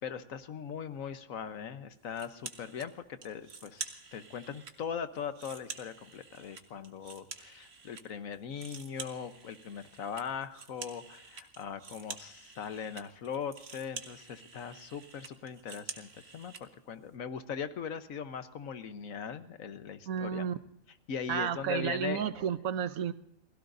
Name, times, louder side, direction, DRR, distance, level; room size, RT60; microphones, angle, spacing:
voice 1, 0.0-20.5 21.1-22.2, left 7 dB, 70° left, 10 dB, 1.3 m, -40 dB
sound 1, 2.1-2.9 3.2-4.7 5.1-8.0 8.3-16.6, right 4 dB, 50° right, 1.6 m, -47 dB
voice 2, 20.1-20.6 21.3-23.1, right 8 dB, 75° right, 12 dB, 1.2 m, -32 dB
29.0 x 17.0 x 2.6 m, 0.79 s
omnidirectional pair, 1.5 m